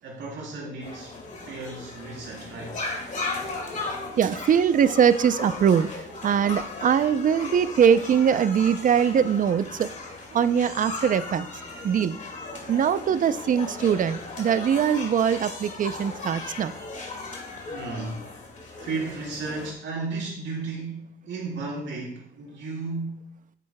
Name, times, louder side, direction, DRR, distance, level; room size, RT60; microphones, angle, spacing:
voice 1, 0.0-1.2 1.5-2.8 17.7-18.4 18.7-23.3, right 3 dB, 70° right, -2 dB, 3.3 m, -34 dB
sound 1, 0.8-19.7, left 3 dB, 40° left, 2.1 m, -37 dB
voice 2, 4.2-9.9 10.3-11.5 11.8-12.2 12.7-16.7, right 8 dB, 40° right, 14 dB, 0.5 m, -22 dB
8.8 x 8.4 x 2.2 m, 0.68 s
cardioid pair, 90°, 20 cm